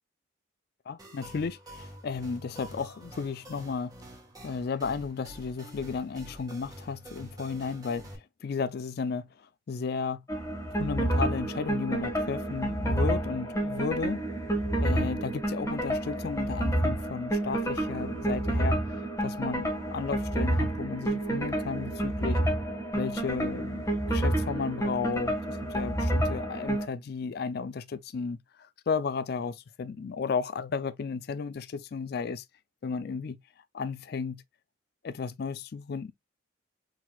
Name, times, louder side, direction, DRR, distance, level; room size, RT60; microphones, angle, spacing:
voice 1, 0.9-3.9 4.4-10.2 10.8-14.2 14.8-22.4 22.9-32.4 32.8-33.4 33.7-34.4 35.0-36.1, left 5 dB, 50° left, 0.3 m, -34 dB
sound 1, 1.0-8.1, right 1 dB, 20° right, 1.9 m, -47 dB
sound 2, 10.3-26.9, right 1 dB, 15° left, 1.4 m, -29 dB
4.4 x 4.0 x 2.3 m
head